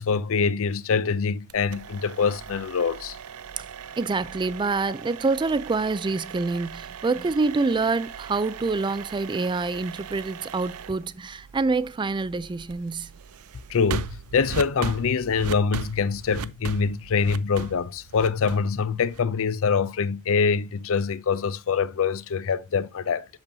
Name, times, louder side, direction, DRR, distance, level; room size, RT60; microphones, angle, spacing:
voice 1, 0.0-3.2 13.7-23.3, left 5 dB, 65° left, 0.5 m, -24 dB
sound 1, 1.5-19.4, right 6 dB, 85° right, 0.5 m, -39 dB
voice 2, 4.0-13.1, right 3 dB, 20° right, 0.3 m, -26 dB
8.0 x 6.9 x 2.6 m
head